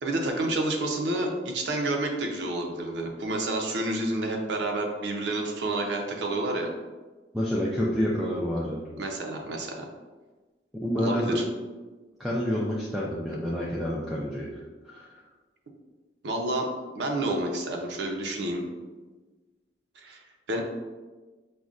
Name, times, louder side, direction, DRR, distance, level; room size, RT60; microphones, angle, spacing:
voice 1, 0.0-6.7 9.0-9.9 11.0-11.4 16.2-16.7 17.0-18.6 20.0-20.6, right 2 dB, 80° right, 2 dB, 0.5 m, -29 dB
voice 2, 7.3-8.8 10.8-11.4 12.2-15.1, equal, ahead, -6 dB, 0.3 m, -28 dB
5.0 x 2.1 x 2.4 m, 1.3 s
head